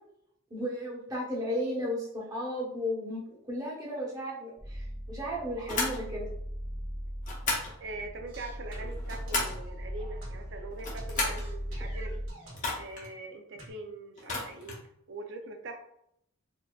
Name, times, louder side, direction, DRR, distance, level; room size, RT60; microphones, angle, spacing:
voice 1, 0.5-6.3, equal, 20° right, -5 dB, 1.0 m, -34 dB
sound 1, 4.6-12.3, equal, ahead, 0.4 m, -39 dB
sound 2, 5.7-6.0 7.2-7.7 8.8-9.6 10.7-11.5 12.5-13.1 14.2-14.8, left 2 dB, 35° left, 0.9 m, -33 dB
voice 2, 7.8-12.2 12.7-14.8 15.1-15.8, right 2 dB, 60° right, 4 dB, 0.5 m, -42 dB
sound 3, 8.3-10.7 11.0-12.9 13.6-13.7, equal, 75° right, 1.4 m, -49 dB
4.2 x 2.6 x 2.3 m, 0.74 s
head